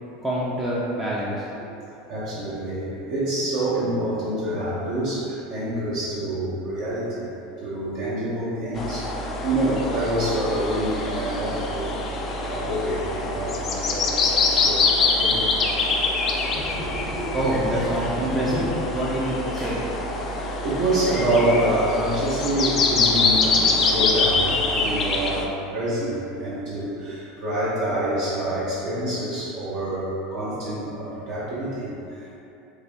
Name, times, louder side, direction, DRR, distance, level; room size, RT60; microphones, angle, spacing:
voice 1, 0.2-1.5 17.3-19.8, right 1 dB, 15° right, -7 dB, 0.5 m, -26 dB
voice 2, 2.1-12.0 12.4-14.8 15.2-15.5 16.5-17.4 17.6-18.1 18.5-18.6 19.5-19.7 20.3-25.5 25.7-32.4, right 1 dB, 60° right, -10 dB, 0.8 m, -27 dB
sound 1, 8.8-25.5, left 3 dB, 35° left, 0.4 m, -24 dB
3.3 x 2.2 x 3.2 m, 2.8 s
hypercardioid pair, 85°, 0 cm